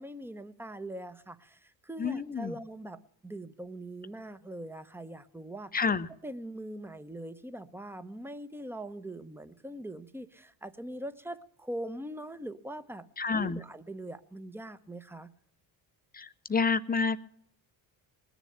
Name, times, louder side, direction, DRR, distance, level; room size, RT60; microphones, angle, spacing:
voice 1, 0.0-5.8 6.2-13.0 13.3-15.3, right 1 dB, 5° right, 12 dB, 0.9 m, -42 dB
voice 2, 2.0-2.6 5.7-6.1 13.2-13.6 16.1-17.2, left 5 dB, 20° left, 13 dB, 0.7 m, -29 dB
19.5 x 7.1 x 8.7 m, 0.68 s
supercardioid pair, 70°, 47 cm